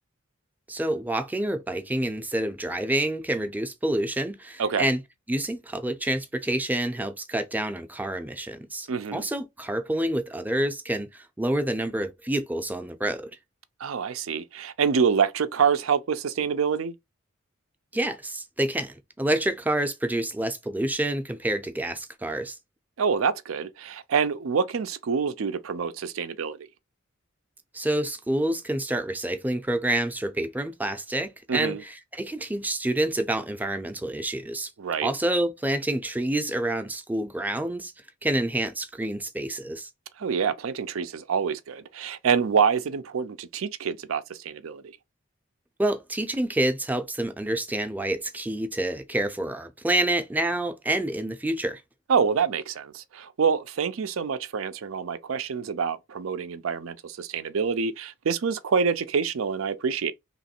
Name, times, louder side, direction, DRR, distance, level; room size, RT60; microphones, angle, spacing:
voice 1, 0.7-5.0 5.3-13.2 17.9-22.6 27.7-34.7 35.0-37.9 38.2-39.9 45.8-51.8, right 1 dB, 10° right, 0.5 m, -28 dB
voice 2, 8.9-9.2 13.8-16.9 23.0-26.6 31.5-31.8 34.8-35.1 40.2-44.8 52.1-60.1, right 6 dB, 80° right, 0.5 m, -26 dB
3.1 x 2.9 x 4.3 m
head